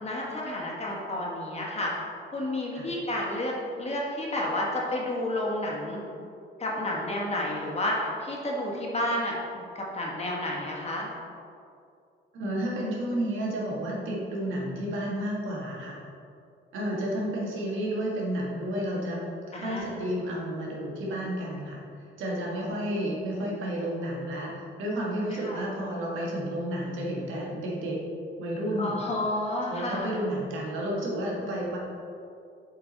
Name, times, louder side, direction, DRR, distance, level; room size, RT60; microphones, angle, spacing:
voice 1, 0.0-1.9 2.3-6.0 6.6-11.1 19.5-20.1 25.3-25.6 28.8-30.2, left 1 dB, 30° left, -3 dB, 1.7 m, -31 dB
voice 2, 12.3-16.0 16.7-19.2 19.6-21.8 22.2-28.0 28.4-29.0 29.6-31.8, right 1 dB, 85° right, -3 dB, 1.6 m, -31 dB
7.5 x 4.5 x 4.1 m, 2.5 s
cardioid pair, 90°, 20 cm